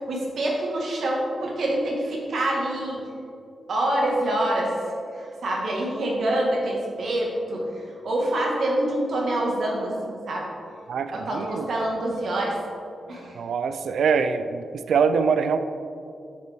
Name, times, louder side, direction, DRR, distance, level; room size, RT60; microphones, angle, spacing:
voice 1, 0.0-3.1 3.7-4.7 5.1-10.5 11.1-12.6 13.1-13.4, right 1 dB, 60° right, -2 dB, 1.6 m, -26 dB
voice 2, 10.9-11.7 13.4-15.6, right 6 dB, 80° right, 10 dB, 0.3 m, -24 dB
8.1 x 6.8 x 3.5 m, 2.6 s
wide cardioid pair, 165°, 0 cm